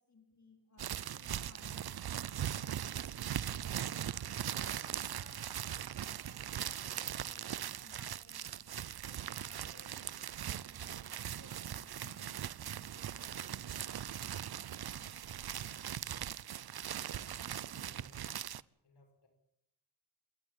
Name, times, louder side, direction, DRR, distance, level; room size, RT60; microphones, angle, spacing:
voice 1, 0.0-2.7 3.4-7.5 7.8-8.5 9.1-15.2 17.4-17.9, left 3 dB, 45° left, 4 dB, 4.4 m, -63 dB
sound 1, 0.8-18.6, right 10 dB, 65° right, 0.7 m, -40 dB
voice 2, 16.0-16.4 17.0-17.4 17.8-18.3 18.8-19.3, left 2 dB, 80° left, 5 dB, 6.7 m, -65 dB
27.5 x 13.0 x 9.0 m, 0.80 s
cardioid pair, 65°, 40 cm